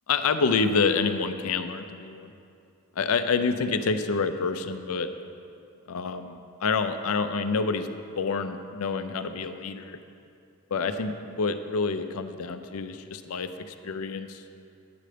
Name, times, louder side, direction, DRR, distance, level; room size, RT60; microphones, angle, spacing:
voice 1, 0.1-2.3 3.0-5.1 5.9-7.9 8.2-10.0 10.7-14.4, left 4 dB, 80° left, 9 dB, 0.5 m, -27 dB
9.5 x 7.7 x 5.0 m, 2.5 s
head